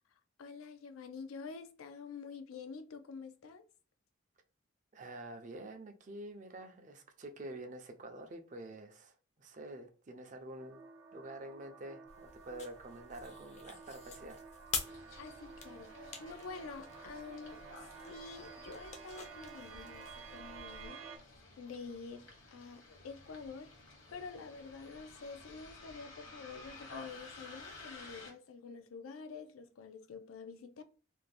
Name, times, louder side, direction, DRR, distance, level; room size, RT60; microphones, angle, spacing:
voice 1, 0.4-3.6 15.2-21.1 21.6-23.7 24.1-30.8, left 4 dB, 90° left, 0.4 m, -48 dB
voice 2, 4.9-10.8 11.1-14.4 14.8-14.9, right 1 dB, 40° right, 0.4 m, -48 dB
sound 1, 10.6-21.2, right 5 dB, 85° right, 0.6 m, -52 dB
sound 2, 12.1-20.9, left 5 dB, 35° left, 0.4 m, -47 dB
Bus, 14.9-28.3, left 3 dB, 65° left, 1.0 m, -54 dB
2.6 x 2.1 x 3.2 m
head